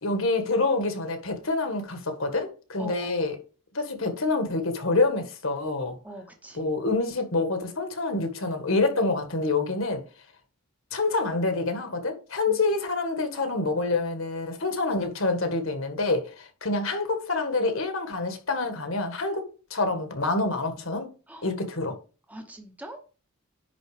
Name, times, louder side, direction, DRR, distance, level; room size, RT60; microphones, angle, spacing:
voice 1, 0.0-3.4 3.7-5.9 6.5-10.0 10.9-19.4 19.7-21.1 21.4-21.9, left 3 dB, 65° left, 1.7 m, -27 dB
voice 2, 2.8-3.1 6.0-6.7 12.5-12.6 21.3-21.5 22.3-23.0, right 1 dB, 5° right, 1.1 m, -42 dB
10.5 x 4.0 x 5.1 m
head